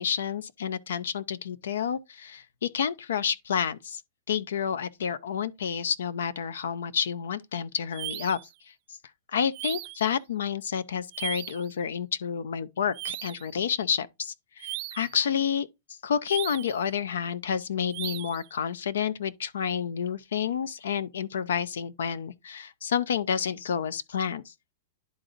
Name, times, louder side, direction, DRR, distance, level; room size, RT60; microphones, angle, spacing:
voice 1, 0.0-4.0 4.3-8.4 9.3-15.7 16.0-24.5, left 7 dB, 85° left, 0.6 m, -29 dB
sound 1, 7.9-8.5 9.5-10.1 11.1-11.7 12.9-13.5 14.6-15.2 16.3-16.8 17.9-18.5, right 21 dB, 40° right, 0.3 m, -37 dB
11.0 x 3.9 x 2.5 m
hypercardioid pair, 150°, 0 cm